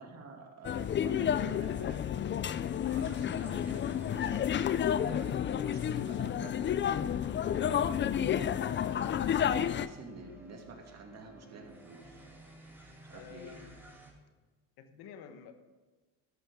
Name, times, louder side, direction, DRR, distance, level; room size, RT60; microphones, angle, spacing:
voice 1, 0.0-6.6 7.5-8.6 9.3-12.3 13.1-13.7, right 3 dB, 45° right, 2 dB, 2.5 m, -49 dB
sound 1, 0.6-9.9, left 9 dB, 30° left, 0.5 m, -31 dB
sound 2, 2.9-14.1, right 1 dB, 5° right, 2.7 m, -56 dB
voice 2, 13.1-13.8 14.8-15.5, left 7 dB, 75° left, 8 dB, 1.3 m, -50 dB
13.0 x 12.5 x 3.7 m, 1.3 s
cardioid pair, 100°, 37 cm